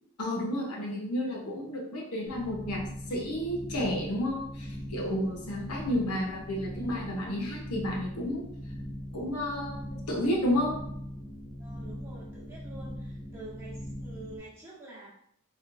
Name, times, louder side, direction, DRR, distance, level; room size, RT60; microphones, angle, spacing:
voice 1, 0.2-8.5 9.1-10.8, left 1 dB, 80° left, -2 dB, 1.0 m, -31 dB
sound 1, 2.3-14.4, equal, 10° left, 0.8 m, -41 dB
voice 2, 11.6-15.1, right 2 dB, 15° right, -7 dB, 1.3 m, -47 dB
4.5 x 3.2 x 2.6 m, 0.71 s
head